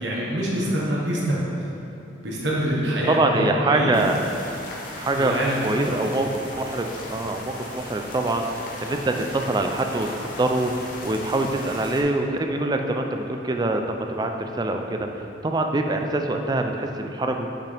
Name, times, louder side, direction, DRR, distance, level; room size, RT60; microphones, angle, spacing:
voice 1, 0.0-1.4 2.2-4.0 5.1-6.0, right 1 dB, 75° right, -5 dB, 1.3 m, -25 dB
voice 2, 3.1-4.2 4.9-5.3 5.6-17.5, right 2 dB, 20° right, 4 dB, 0.3 m, -25 dB
sound 1, 3.9-12.0, left 1 dB, 50° left, 0.8 m, -37 dB
6.1 x 5.8 x 3.3 m, 2.8 s
head